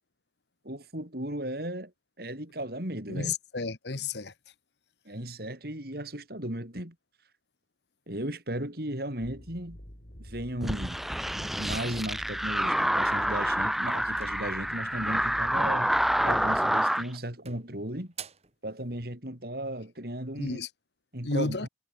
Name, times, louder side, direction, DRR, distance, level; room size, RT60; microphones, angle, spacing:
voice 1, 0.6-1.9 2.2-3.3 5.1-6.9 8.1-9.8 10.2-11.0 11.4-15.9 16.2-18.1 18.6-20.6 21.1-21.7, right 1 dB, 60° right, 6.0 m, -36 dB
voice 2, 3.1-4.3 20.4-20.7 21.2-21.7, left 3 dB, 70° left, 1.4 m, -32 dB
sound 1, 9.2-16.6, equal, 50° left, 5.2 m, -47 dB
sound 2, 10.6-17.1, equal, ahead, 0.4 m, -27 dB
sound 3, 13.9-15.1 16.4-16.8 17.1-18.6, right 8 dB, 35° right, 2.4 m, -48 dB
head